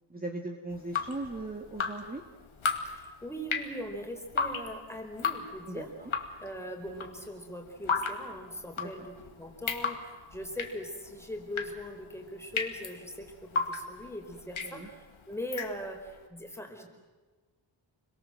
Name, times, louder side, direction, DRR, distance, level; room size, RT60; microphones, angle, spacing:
voice 1, 0.1-2.2 5.7-6.1 8.8-9.1 14.6-14.9, right 2 dB, 20° right, 3 dB, 2.0 m, -39 dB
Drip, 0.7-16.2, left 5 dB, 80° left, 2.4 m, -36 dB
voice 2, 2.8-5.9 6.4-16.9, equal, 5° left, 3 dB, 4.4 m, -41 dB
28.5 x 22.5 x 7.7 m, 1.3 s
wide cardioid pair, 105°, 48 cm